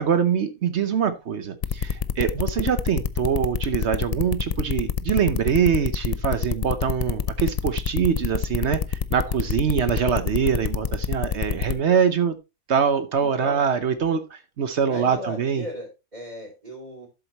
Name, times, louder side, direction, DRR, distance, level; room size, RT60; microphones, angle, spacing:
voice 1, 0.0-12.4 12.7-15.6, right 7 dB, 55° right, 1.0 m, -24 dB
sound 1, 1.6-11.7, left 7 dB, 75° left, 0.3 m, -26 dB
voice 2, 13.2-13.6 14.8-17.1, equal, 30° right, 3.0 m, -37 dB
11.5 x 7.7 x 2.9 m
omnidirectional pair, 1.4 m